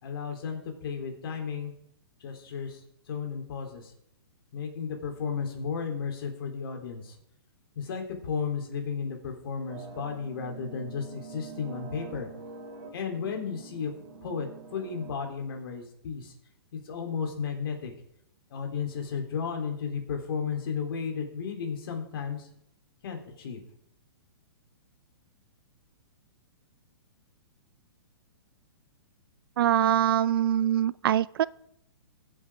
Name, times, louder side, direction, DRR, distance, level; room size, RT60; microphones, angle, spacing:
voice 1, 0.0-1.7 2.2-2.8 3.1-3.9 4.5-7.2 7.8-12.3 12.9-13.9 14.2-16.3 16.7-17.9 18.5-22.5 23.0-23.6, left 6 dB, 60° left, 2 dB, 3.7 m, -34 dB
sound 1, 9.7-15.1, right 4 dB, 80° right, 3.0 m, -45 dB
voice 2, 29.6-31.5, right 11 dB, 60° right, 21 dB, 0.4 m, -23 dB
22.0 x 8.0 x 3.7 m, 0.73 s
hypercardioid pair, 145°, 13 cm